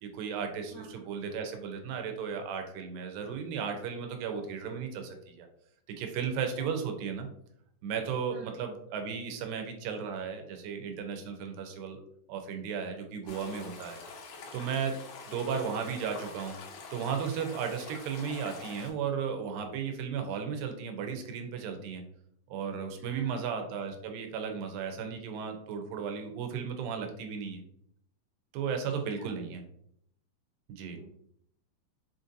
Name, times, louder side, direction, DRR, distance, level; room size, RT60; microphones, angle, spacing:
voice 1, 0.0-5.5 6.0-7.3 7.8-12.0 12.3-14.0 14.5-15.0 15.3-16.6 16.9-22.0 22.5-27.6 28.5-29.6 30.7-31.0, right 6 dB, 90° right, 5 dB, 2.3 m, -35 dB
voice 2, 0.7-1.0 6.6-6.7 8.3-8.5 15.4-15.6 23.1-23.6 29.1-29.4 30.9-31.1, right 4 dB, 70° right, -5 dB, 1.0 m, -47 dB
sound 1, 13.3-18.9, left 4 dB, 75° left, 1.9 m, -46 dB
5.7 x 2.6 x 2.5 m, 0.72 s
omnidirectional pair, 4.0 m